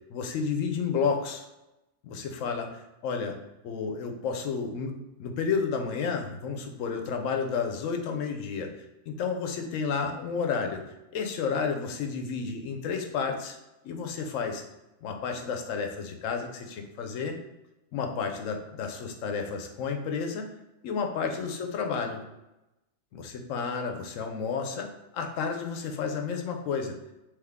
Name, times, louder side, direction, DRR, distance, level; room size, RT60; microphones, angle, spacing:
voice 1, 0.1-1.4 2.0-3.4 3.6-8.7 9.1-13.6 13.8-14.6 15.0-17.4 17.9-20.5 20.8-22.2 23.1-24.9 25.1-27.0, left 5 dB, 80° left, 4 dB, 1.0 m, -31 dB
3.6 x 3.2 x 3.4 m, 0.96 s
omnidirectional pair, 1.3 m